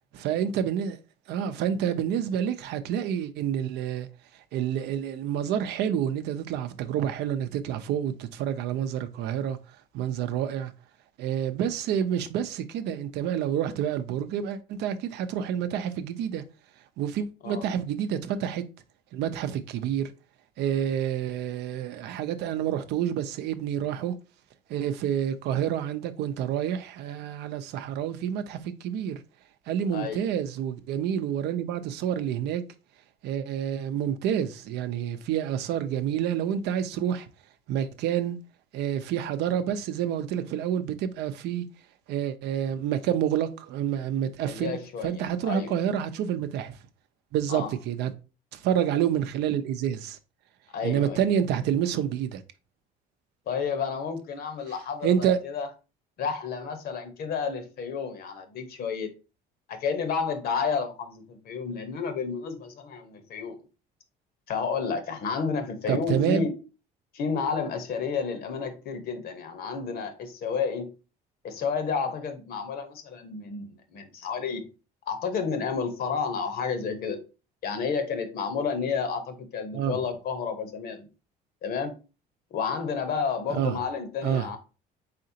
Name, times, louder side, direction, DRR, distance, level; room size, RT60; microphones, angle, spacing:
voice 1, 0.1-1.0 1.3-4.1 4.5-9.6 9.9-10.7 11.2-16.4 17.0-18.6 19.1-20.1 20.6-24.1 24.7-29.2 29.7-32.6 33.2-37.3 37.7-38.4 38.7-41.6 42.1-44.8 45.0-46.8 47.3-48.1 48.5-50.2 50.8-52.4 55.0-55.4 65.9-66.5 79.7-80.0 83.6-83.8 84.2-84.5, right 9 dB, 80° right, 0.6 m, -28 dB
voice 2, 29.9-30.2 44.5-45.7 47.5-47.7 50.7-51.2 53.5-55.7 56.2-59.1 59.7-63.6 64.5-66.6 67.1-70.9 71.4-74.7 75.1-77.2 77.6-81.1 81.6-81.9 82.5-84.6, left 5 dB, 65° left, 0.9 m, -31 dB
4.2 x 3.8 x 2.7 m
cardioid pair, 110°, 17 cm